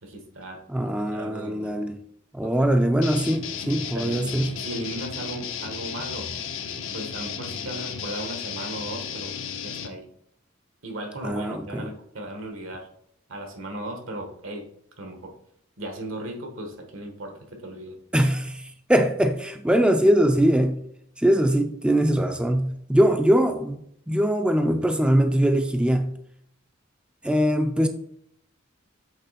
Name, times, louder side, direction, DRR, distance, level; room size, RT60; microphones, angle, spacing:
voice 1, 0.0-0.6 1.1-1.8 2.4-2.7 3.9-6.3 6.9-9.4 9.6-10.1 10.8-12.9 13.3-14.7 15.0-15.3 15.8-18.0, right 1 dB, 80° right, 1.4 m, -36 dB
voice 2, 0.7-2.0 2.3-4.6 11.2-11.9 18.1-20.9 21.2-26.2 27.2-27.9, right 1 dB, 5° right, 0.4 m, -22 dB
sound 1, 3.0-9.9, left 7 dB, 70° left, 0.6 m, -34 dB
7.9 x 3.3 x 4.1 m
head